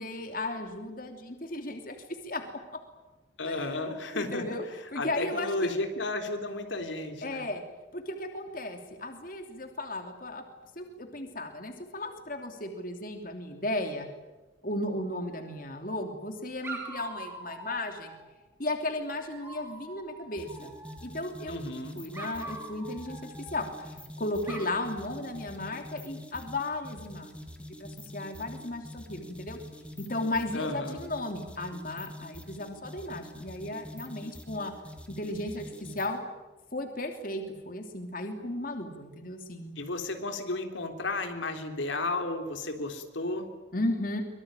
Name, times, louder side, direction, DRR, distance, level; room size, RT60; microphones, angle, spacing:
voice 1, 0.0-2.0 2.2-2.6 3.4-3.8 4.1-4.6 4.9-5.7 7.2-7.6 7.9-10.4 10.7-14.1 14.6-18.1 18.6-20.7 21.0-21.6 21.9-29.6 30.0-34.7 35.2-36.2 36.7-39.8 43.7-44.2, left 1 dB, 45° left, 5 dB, 3.0 m, -35 dB
voice 2, 3.4-4.5 5.0-7.5 21.5-22.0 30.5-31.1 39.8-43.5, left 2 dB, 80° left, 5 dB, 3.6 m, -33 dB
Dog, 15.1-15.9 16.6-18.3 19.1-21.2 22.1-24.0 24.4-24.9, right 2 dB, 15° right, 6.8 m, -44 dB
sound 1, 20.4-36.2, left 1 dB, 5° left, 2.5 m, -45 dB
24.5 x 24.0 x 9.0 m, 1.1 s
head